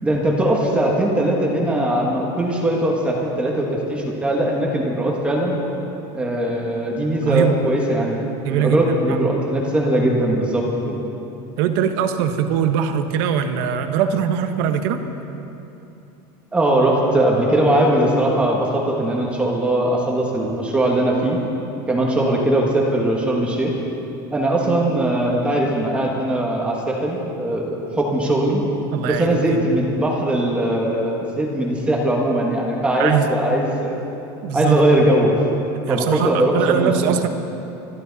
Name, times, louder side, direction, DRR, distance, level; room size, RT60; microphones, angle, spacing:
voice 1, 0.0-5.6 6.1-8.2 8.5-11.0 16.5-21.4 21.9-23.7 24.3-28.6 29.0-34.0 34.5-35.4 35.9-37.1, right 1 dB, 10° right, -2 dB, 1.4 m, -20 dB
voice 2, 7.2-7.6 8.4-9.2 11.6-15.0 28.9-29.6 33.0-33.3 34.4-34.8 35.9-37.3, right 8 dB, 60° right, 7 dB, 1.2 m, -21 dB
26.0 x 12.0 x 4.1 m, 2.9 s
cardioid pair, 175°, 13 cm